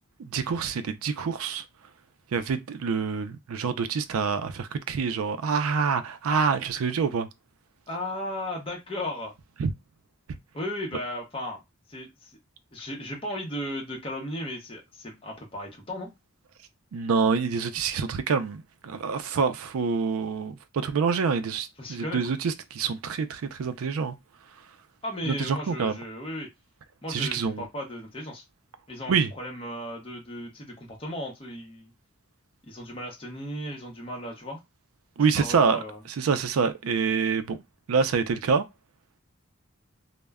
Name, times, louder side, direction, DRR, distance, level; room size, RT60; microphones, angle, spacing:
voice 1, 0.2-1.6 2.3-7.3 9.6-9.7 16.9-24.2 25.3-26.0 27.1-27.7 29.1-29.3 35.2-35.8 36.2-37.6 37.9-38.7, right 5 dB, 80° right, 0.4 m, -26 dB
voice 2, 7.9-9.3 10.5-11.6 11.9-12.4 12.7-16.1 21.8-22.3 25.0-26.5 27.0-28.4 28.9-31.9 32.6-34.6 35.4-36.0, left 1 dB, 25° left, 0.7 m, -35 dB
2.1 x 2.1 x 3.4 m
head